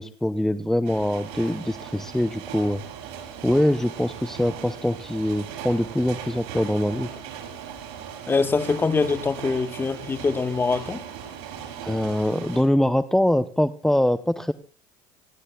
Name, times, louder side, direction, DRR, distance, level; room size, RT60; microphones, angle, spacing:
voice 1, 0.0-2.8 3.4-7.1 11.8-14.5, left 1 dB, 5° left, 0.7 m, -23 dB
sound 1, 0.8-12.6, right 8 dB, 75° right, 6.6 m, -38 dB
voice 2, 8.3-11.1, left 4 dB, 20° left, 1.3 m, -24 dB
27.0 x 20.5 x 2.3 m
supercardioid pair, 100°, 11 cm